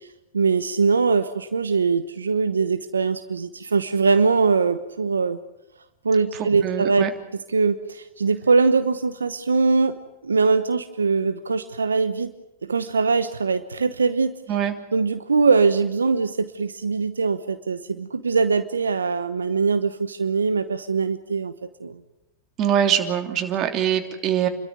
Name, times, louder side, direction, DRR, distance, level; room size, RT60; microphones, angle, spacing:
voice 1, 0.3-5.4 6.0-7.0 7.5-10.0 10.2-12.3 12.6-14.4 14.9-21.5 21.8-22.0, right 4 dB, 90° right, 10 dB, 1.0 m, -22 dB
voice 2, 6.4-7.1 14.5-14.8 22.6-24.5, right 9 dB, 40° right, 6 dB, 3.0 m, -23 dB
29.0 x 13.0 x 9.7 m, 0.91 s
hypercardioid pair, 100°, 0 cm